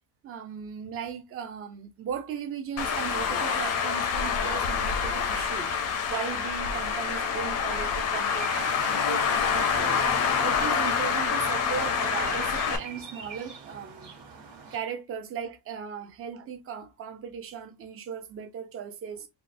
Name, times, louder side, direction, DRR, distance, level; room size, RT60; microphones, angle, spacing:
voice 1, 0.2-5.7 6.1-10.1 10.4-14.1 14.7-19.3, right 7 dB, 30° right, 0.4 m, -37 dB
Traffic noise roadway noise, 2.8-12.8, left 6 dB, 35° left, 0.4 m, -27 dB
sound 1, 8.3-14.8, right 5 dB, 80° right, 1.4 m, -45 dB
3.7 x 2.0 x 2.5 m
cardioid pair, 175°, 45 cm